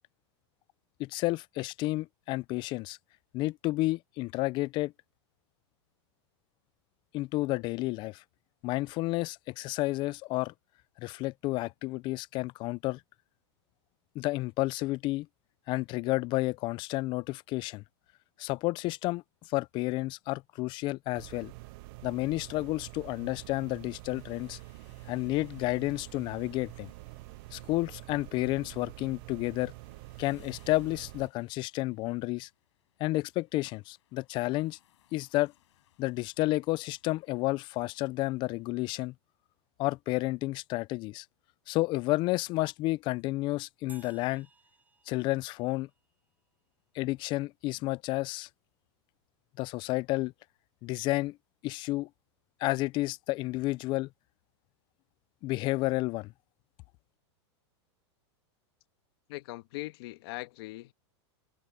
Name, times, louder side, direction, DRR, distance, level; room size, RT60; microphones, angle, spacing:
voice 1, 1.0-3.0 3.3-4.9 7.1-8.2 8.6-10.5 11.0-13.0 14.2-15.3 15.7-17.8 18.4-19.2 19.5-21.5 22.0-24.6 25.1-26.9 27.5-29.7 30.2-32.5 33.0-34.8 35.1-35.5 36.0-39.1 39.8-41.2 41.7-44.5 45.1-45.9 46.9-48.5 49.6-50.3 50.8-51.4 51.6-52.1 52.6-54.1 55.4-56.3, left 20 dB, 35° left, 0.4 m, -31 dB
sound 1, 21.1-31.3, right 22 dB, 50° right, 0.7 m, -47 dB
sound 2, 24.1-38.7, left 13 dB, 75° left, 7.0 m, -69 dB
sound 3, 43.9-46.3, right 4 dB, 10° right, 7.9 m, -59 dB
voice 2, 59.3-60.9, left 20 dB, 60° left, 1.6 m, -40 dB
supercardioid pair, 140°, 15 cm